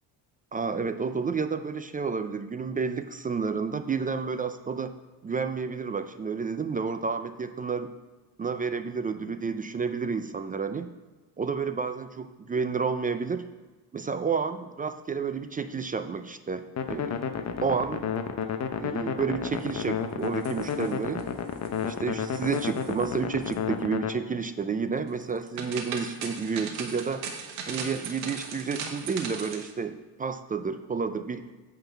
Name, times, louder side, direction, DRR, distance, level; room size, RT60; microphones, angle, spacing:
voice 1, 0.5-4.9 5.2-7.9 8.4-10.9 11.4-13.4 13.9-17.2 17.6-18.1 18.8-21.2 21.9-27.2 27.7-31.5, right 5 dB, 20° right, 10 dB, 0.3 m, -30 dB
sound 1, 16.8-24.1, left 7 dB, 35° left, 0.7 m, -31 dB
sound 2, 20.2-21.2 21.5-22.0 22.2-23.1 23.4-23.6 25.2-29.7, right 6 dB, 90° right, 1.3 m, -38 dB
8.9 x 3.8 x 7.1 m, 1.2 s
cardioid pair, 100°, 44 cm